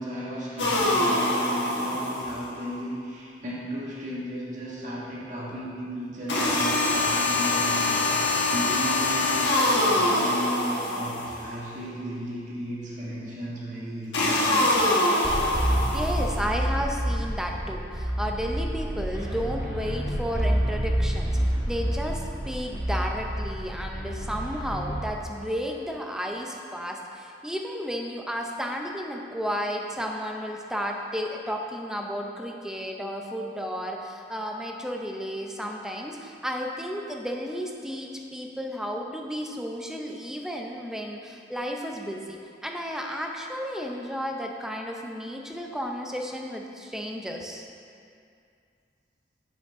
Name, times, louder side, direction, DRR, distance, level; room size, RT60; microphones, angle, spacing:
voice 1, 0.0-14.6, equal, 45° right, -6 dB, 1.7 m, -35 dB
sound 1, 0.6-2.6 6.3-11.6 14.1-16.5, left 2 dB, 90° left, 1.4 m, -24 dB
sound 2, 15.2-25.0, equal, 20° right, 1.6 m, -28 dB
voice 2, 15.9-47.7, equal, 5° right, 1 dB, 0.6 m, -33 dB
8.4 x 6.5 x 3.7 m, 2.4 s
head